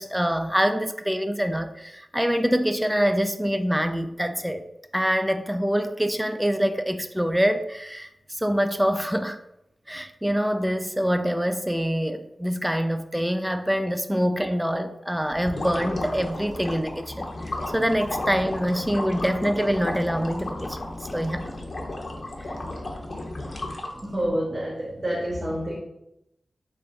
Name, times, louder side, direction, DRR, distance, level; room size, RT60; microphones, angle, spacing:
voice 1, 0.0-4.6 4.9-9.4 9.9-20.8 21.1-21.5, equal, 5° right, 8 dB, 0.3 m, -25 dB
sound 1, 15.3-24.3, left 2 dB, 55° left, 0.8 m, -34 dB
voice 2, 22.6-23.0 23.9-25.8, equal, 40° right, -5 dB, 1.0 m, -29 dB
3.4 x 3.4 x 3.9 m, 0.84 s
cardioid pair, 45°, 0 cm